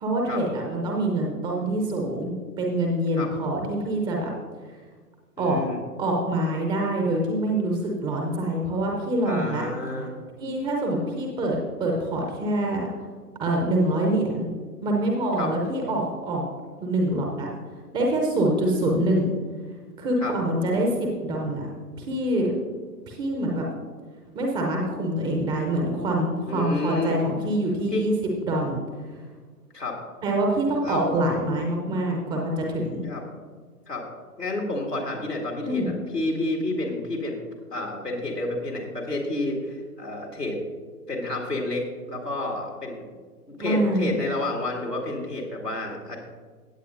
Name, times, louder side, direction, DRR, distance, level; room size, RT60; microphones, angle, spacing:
voice 1, 0.0-4.3 5.4-5.6 6.0-9.6 10.4-12.9 13.4-14.5 14.8-16.4 16.8-17.5 17.9-19.3 20.0-21.6 22.0-22.5 23.1-23.6 24.3-28.1 28.4-28.8 30.2-33.0 35.6-35.9 43.6-44.1, right 1 dB, 10° right, 0 dB, 0.7 m, -25 dB
voice 2, 5.4-5.8 9.2-10.1 15.4-15.5 20.2-20.4 26.5-27.2 27.9-28.1 29.7-30.0 30.8-31.1 33.0-33.2 33.9-34.0 34.4-37.4 37.7-40.6 41.1-43.0 43.5-46.2, left 2 dB, 85° left, 0 dB, 2.3 m, -30 dB
16.5 x 8.1 x 2.6 m, 1.5 s
figure-of-eight pair, 115°, 46 cm